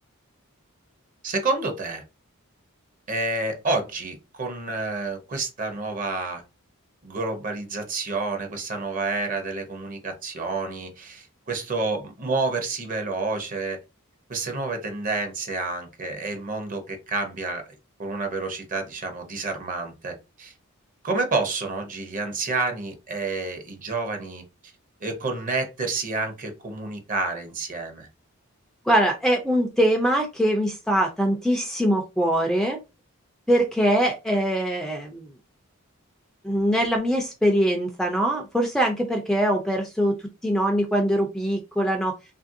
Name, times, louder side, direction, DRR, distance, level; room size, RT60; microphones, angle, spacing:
voice 1, 1.2-2.0 3.1-6.4 7.0-13.8 14.3-17.6 18.0-20.5 21.0-24.4 25.0-28.1, right 3 dB, 40° right, 5 dB, 0.7 m, -29 dB
voice 2, 28.8-32.8 33.5-35.3 36.4-40.2 40.4-42.1, equal, ahead, 3 dB, 0.3 m, -22 dB
3.0 x 2.5 x 2.6 m, 0.27 s
head